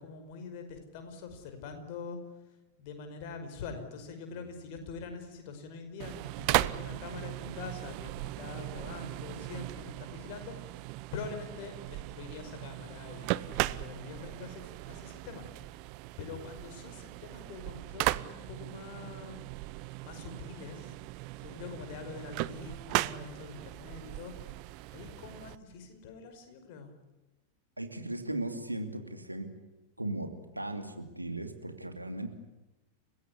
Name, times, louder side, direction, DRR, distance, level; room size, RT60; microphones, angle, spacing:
voice 1, 0.0-2.2 2.8-10.8 11.1-15.4 16.2-19.5 20.0-20.9 21.4-24.5 24.9-26.9, left 5 dB, 50° left, 7 dB, 5.4 m, -44 dB
sound 1, 6.0-25.6, right 19 dB, 45° right, 0.8 m, -37 dB
voice 2, 27.8-29.5 30.0-32.3, right 1 dB, 85° right, 7 dB, 2.7 m, -37 dB
29.5 x 16.5 x 10.0 m, 1.0 s
figure-of-eight pair, 90°, 0 cm